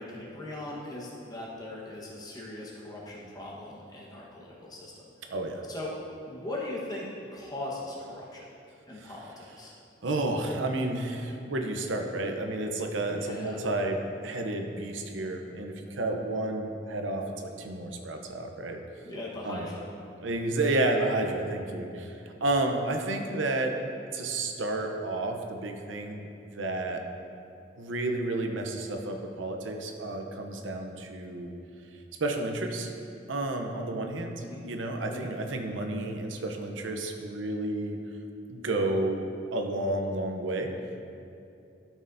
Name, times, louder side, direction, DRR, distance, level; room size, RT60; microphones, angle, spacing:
voice 1, 0.0-5.3 5.7-5.9 6.3-8.5 8.9-9.7 13.1-13.6 19.0-19.9 34.4-34.6 35.1-35.3, left 1 dB, 20° left, -4 dB, 1.2 m, -40 dB
voice 2, 5.3-5.6 9.0-9.1 10.0-18.8 19.4-19.7 20.2-23.8 24.1-26.3 26.5-27.0 27.8-31.5 32.2-32.9 33.3-34.3 34.6-38.0 38.5-39.2 39.5-40.7, right 2 dB, 90° right, 4 dB, 0.7 m, -31 dB
12.5 x 6.3 x 2.7 m, 2.6 s
head